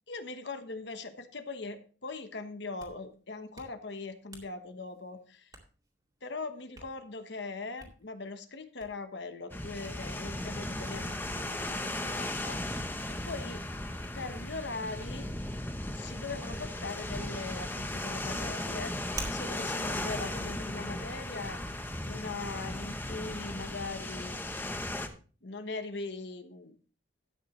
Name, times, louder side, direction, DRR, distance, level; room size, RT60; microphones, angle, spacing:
voice 1, 0.1-5.5 6.2-13.6 14.1-15.3 15.9-21.6 22.0-24.4 25.4-26.8, left 3 dB, 60° left, 8 dB, 1.2 m, -41 dB
Hands, 2.5-21.1, right 2 dB, 20° right, 2.4 m, -52 dB
sound 1, 9.5-25.1, left 1 dB, 10° left, 0.9 m, -36 dB
12.5 x 8.9 x 3.2 m, 0.38 s
head